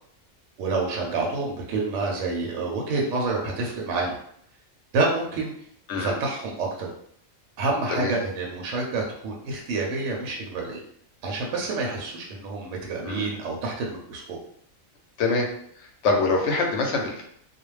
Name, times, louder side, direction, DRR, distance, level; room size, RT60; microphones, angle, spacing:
voice 1, 0.6-4.2 4.9-5.5 6.0-6.9 7.6-10.8 11.2-14.4, right 3 dB, 70° right, -1 dB, 0.9 m, -28 dB
voice 2, 15.2-15.5 15.8-17.2, left 3 dB, 65° left, 1 dB, 0.8 m, -25 dB
2.4 x 2.1 x 3.1 m, 0.68 s
omnidirectional pair, 1.4 m